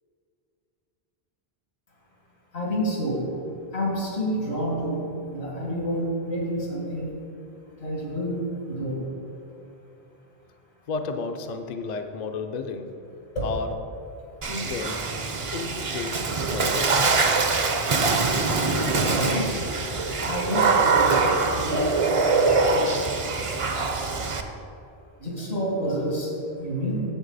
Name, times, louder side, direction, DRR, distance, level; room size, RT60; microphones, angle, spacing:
voice 1, 2.5-3.3 3.7-7.1 7.8-9.0 13.3-13.5 19.1-19.6 20.2-23.0 25.2-27.0, equal, 85° left, -4 dB, 2.5 m, -29 dB
voice 2, 10.9-13.0 13.4-14.0 14.5-15.1 15.5-17.2, left 4 dB, 50° left, 6 dB, 0.6 m, -33 dB
Water / Splash splatter, 14.4-24.4, right 3 dB, 40° right, 0.5 m, -23 dB
9.7 x 7.7 x 4.1 m, 2.7 s
omnidirectional pair, 1.1 m